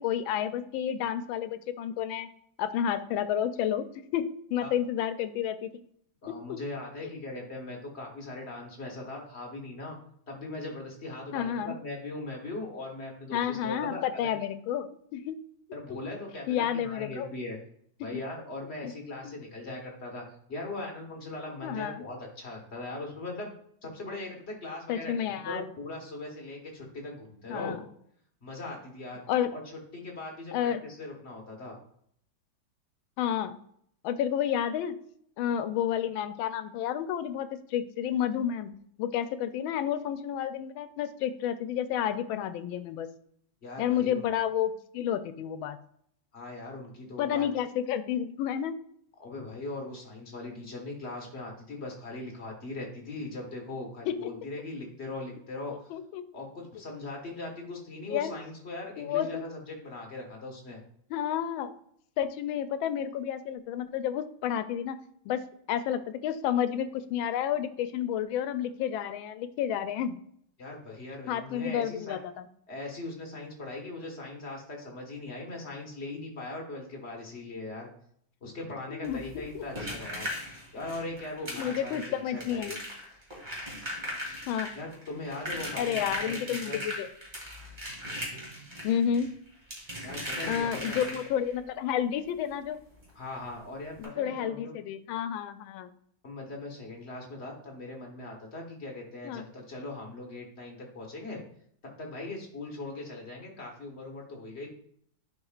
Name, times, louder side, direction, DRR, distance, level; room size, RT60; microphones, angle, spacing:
voice 1, 0.0-2.3 2.6-3.9 4.1-5.8 6.3-6.6 11.3-11.7 13.3-15.4 16.5-17.3 18.8-18.9 19.2-19.4 21.6-22.0 24.9-25.7 27.5-27.8 29.3-29.5 30.5-30.8 33.2-33.6 34.0-35.0 35.4-38.7 39.0-43.1 43.8-45.8 47.2-48.8 54.1-54.3 55.9-56.2 58.1-58.3 59.0-59.4 61.1-61.8 62.2-65.0 65.3-65.4 65.7-70.2 71.3-72.5 78.9-79.6 81.5-82.8 84.5-84.7 85.7-87.1 88.8-89.3 90.5-92.8 94.0-95.9 99.2-99.5, left 9 dB, 90° left, 11 dB, 1.4 m, -30 dB
voice 2, 6.2-10.0 10.3-14.3 15.7-17.6 18.0-20.2 20.5-23.6 23.8-27.8 28.4-29.2 29.5-31.8 43.6-44.3 46.3-47.5 49.2-56.0 56.3-60.8 70.6-72.2 72.7-77.9 78.4-80.3 80.7-82.8 84.7-86.8 90.0-91.2 93.1-94.7 96.2-101.4 101.8-104.7, left 2 dB, 35° left, 0 dB, 1.4 m, -40 dB
sound 1, 79.0-91.5 93.0-93.1 93.4-93.5 93.9-94.0, equal, 25° right, 2.2 m, -38 dB
10.5 x 4.8 x 2.4 m, 0.67 s
omnidirectional pair, 2.1 m